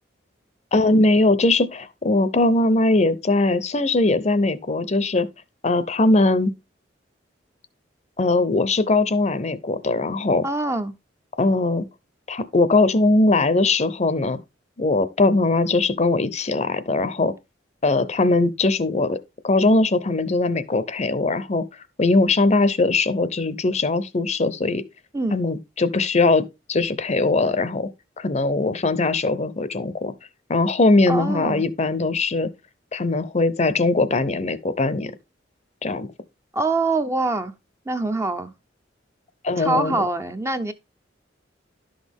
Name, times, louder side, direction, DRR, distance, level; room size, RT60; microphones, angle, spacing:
voice 1, 0.7-5.3 5.6-6.5 8.2-10.4 11.4-11.8 12.3-14.4 14.8-17.3 17.8-19.2 19.4-21.6 22.0-24.8 25.3-27.9 28.2-30.1 30.5-32.5 32.9-35.1 35.8-36.1 39.4-40.1, left 2 dB, 35° left, 0.6 m, -20 dB
voice 2, 10.4-10.9 25.1-25.4 31.1-31.6 36.5-37.5 37.9-38.5 39.6-40.7, right 2 dB, 15° right, 0.6 m, -24 dB
11.0 x 6.3 x 3.5 m
head